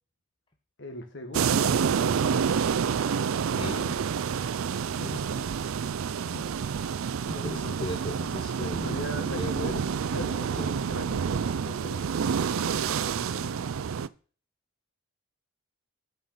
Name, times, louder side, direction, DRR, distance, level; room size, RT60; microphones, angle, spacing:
voice 1, 0.8-2.4 5.3-5.5 7.3-7.5 8.6-9.7 10.1-12.1 12.5-13.7, left 1 dB, 60° left, 6 dB, 1.8 m, -41 dB
sound 1, 1.3-14.1, right 7 dB, 75° right, 0.4 m, -28 dB
voice 2, 3.5-4.0 5.0-5.2 6.3-6.4 7.3-9.0 9.3-9.8 10.6-10.7, left 1 dB, 25° left, 4 dB, 0.7 m, -36 dB
9.2 x 5.4 x 5.8 m, 0.39 s
head